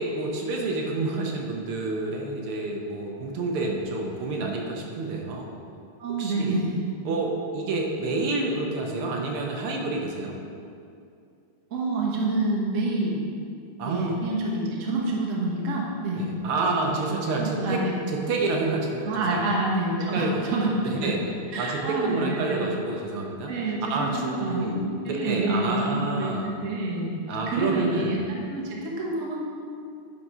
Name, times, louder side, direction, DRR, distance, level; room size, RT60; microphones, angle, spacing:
voice 1, 0.0-5.5 6.2-6.6 7.1-10.3 13.8-14.2 16.2-17.8 18.1-19.6 20.0-21.2 21.6-23.5 23.9-24.8 25.1-26.5 27.3-28.3, right 3 dB, 80° right, 0 dB, 1.8 m, -29 dB
voice 2, 6.0-6.8 11.7-13.2 13.8-16.2 16.7-17.9 19.0-21.0 21.5-22.7 23.5-23.8 24.1-27.2 27.5-29.5, right 2 dB, 45° right, -2 dB, 1.3 m, -28 dB
9.5 x 4.3 x 5.4 m, 2.4 s
omnidirectional pair, 2.4 m